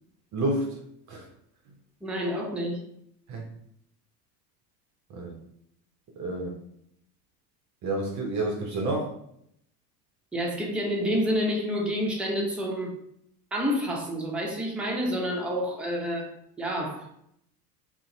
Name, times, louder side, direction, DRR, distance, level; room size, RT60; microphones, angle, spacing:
voice 1, 0.3-0.8 1.1-1.2 3.3-3.5 5.1-5.4 6.2-6.6 7.8-9.1, right 2 dB, 35° right, 2 dB, 0.6 m, -29 dB
voice 2, 2.0-2.8 10.3-12.9 13.5-16.3 16.6-17.1, equal, ahead, -2 dB, 0.7 m, -28 dB
3.7 x 2.1 x 2.7 m, 0.72 s
hypercardioid pair, 75°, 49 cm